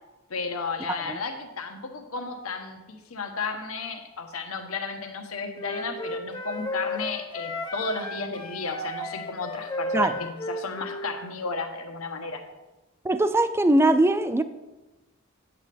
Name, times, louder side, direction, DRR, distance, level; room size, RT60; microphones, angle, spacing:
voice 1, 0.3-12.4, left 4 dB, 85° left, 1.0 m, -33 dB
Wind instrument woodwind instrument, 5.6-11.1, left 1 dB, 20° left, 0.8 m, -34 dB
voice 2, 13.0-14.4, right 1 dB, 10° right, 0.3 m, -21 dB
8.4 x 8.2 x 3.4 m
head